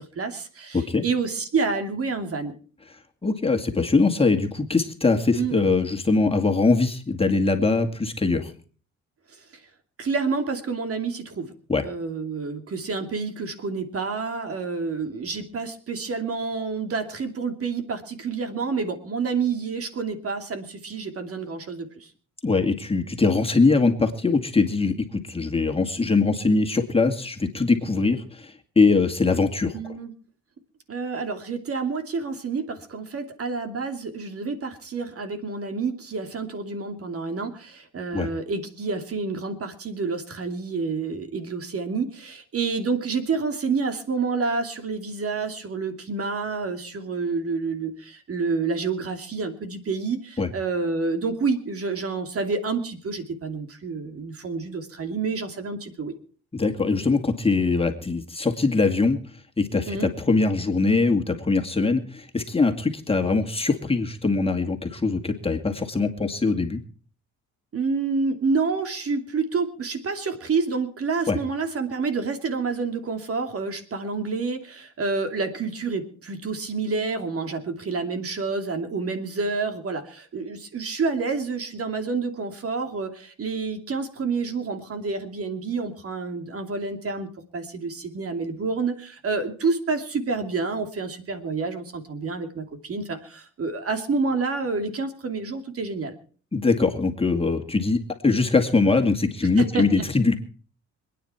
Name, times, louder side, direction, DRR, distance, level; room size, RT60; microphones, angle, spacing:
voice 1, 0.0-2.5 5.3-5.5 9.4-9.6 10.0-11.5 11.8-22.1 29.7-30.1 30.9-56.1 59.9-60.1 67.7-96.2 99.6-100.1, right 4 dB, 50° right, 7 dB, 2.8 m, -28 dB
voice 2, 3.2-8.5 11.7-11.8 22.4-29.9 38.1-38.3 50.4-50.5 56.5-59.2 59.6-66.8 71.3-71.4 96.5-100.4, left 3 dB, 20° left, 5 dB, 2.3 m, -22 dB
26.0 x 9.8 x 4.5 m, 0.42 s
cardioid pair, 90°, 30 cm